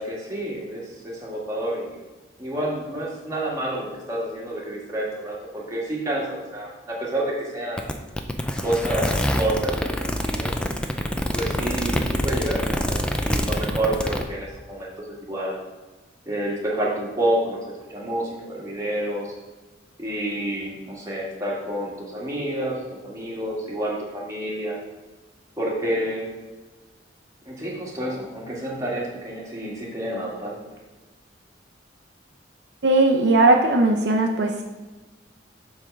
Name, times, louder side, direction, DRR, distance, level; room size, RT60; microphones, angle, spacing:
voice 1, 0.0-1.9 2.4-7.9 8.6-9.9 10.2-10.6 11.3-14.9 15.2-15.6 16.2-17.6 17.9-19.3 20.0-24.8 25.6-26.3 27.4-30.6, right 1 dB, 15° right, -4 dB, 1.7 m, -29 dB
sound 1, 7.8-14.2, equal, 5° left, 0.4 m, -25 dB
voice 2, 32.8-34.6, right 2 dB, 65° right, 1 dB, 0.7 m, -18 dB
7.6 x 3.7 x 6.5 m, 1.2 s
head